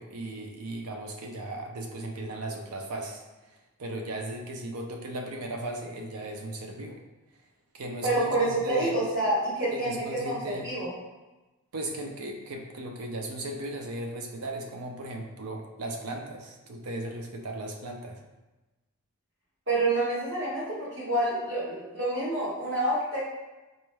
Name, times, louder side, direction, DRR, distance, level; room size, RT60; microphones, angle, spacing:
voice 1, 0.0-3.2 3.8-7.0 7.7-9.0 9.7-10.7 11.7-18.2, right 1 dB, 85° right, 2 dB, 0.6 m, -36 dB
voice 2, 8.0-10.4 10.6-10.9 19.7-23.2, right 2 dB, 55° right, -9 dB, 1.5 m, -27 dB
4.1 x 3.2 x 2.2 m, 1.1 s
head